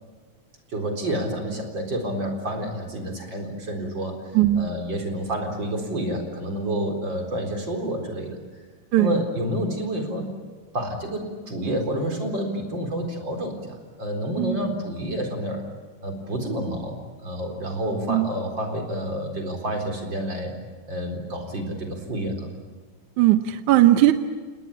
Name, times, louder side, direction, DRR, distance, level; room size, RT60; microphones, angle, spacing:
voice 1, 0.7-4.2 4.6-8.4 9.0-10.3 10.7-15.6 16.0-20.5 20.9-22.5, equal, 35° right, 3 dB, 4.6 m, -29 dB
voice 2, 4.3-4.7 8.9-9.2 14.4-14.7 18.1-18.3 23.2-24.1, right 14 dB, 70° right, 8 dB, 2.2 m, -18 dB
29.5 x 19.5 x 8.8 m, 1.5 s
omnidirectional pair, 3.9 m